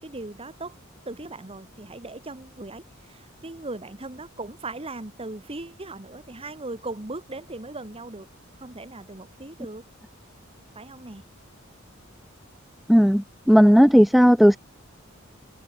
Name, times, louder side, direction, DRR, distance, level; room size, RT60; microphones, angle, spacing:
voice 1, 0.0-0.8 1.0-8.3 8.6-9.8 10.7-11.2, right 2 dB, 30° right, 1.5 m, -38 dB
voice 2, 12.9-14.6, equal, ahead, 0.4 m, -15 dB
head